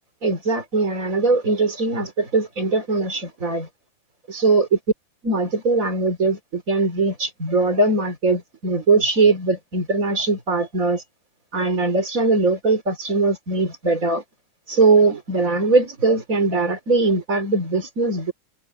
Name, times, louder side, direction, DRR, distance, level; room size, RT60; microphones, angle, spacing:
voice 1, 0.2-3.7 4.3-4.8 5.2-11.0 11.5-14.2 14.7-18.3, right 3 dB, 25° right, 3.5 m, -20 dB
omnidirectional pair, 3.5 m